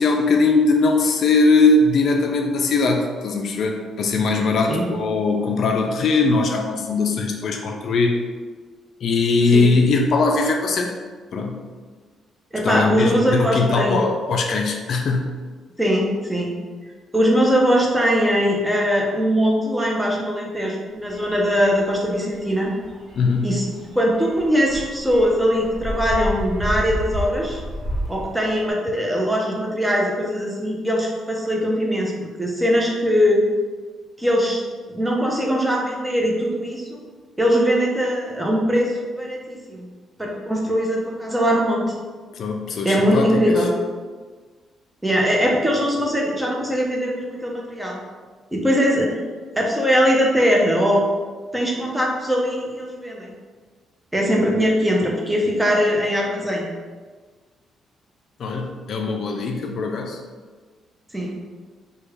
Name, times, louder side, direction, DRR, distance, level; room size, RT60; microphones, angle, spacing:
voice 1, 0.0-8.2 9.0-10.9 11.3-11.7 12.6-15.4 23.2-23.6 42.4-43.4 58.4-60.2, left 3 dB, 60° left, 2 dB, 0.3 m, -20 dB
voice 2, 12.5-14.0 15.8-16.6 17.1-22.7 23.4-23.6 23.9-27.6 28.1-32.1 32.4-33.4 34.2-34.6 34.9-37.0 37.4-39.9 40.2-41.9 42.8-43.7 45.0-48.0 48.5-49.1 49.6-51.0 51.5-53.3 54.1-56.7 61.1-61.4, equal, 10° right, -1 dB, 0.6 m, -21 dB
sound 1, 21.0-28.7, equal, 40° right, 1.3 m, -31 dB
3.0 x 2.3 x 3.4 m, 1.5 s
cardioid pair, 90°, 0 cm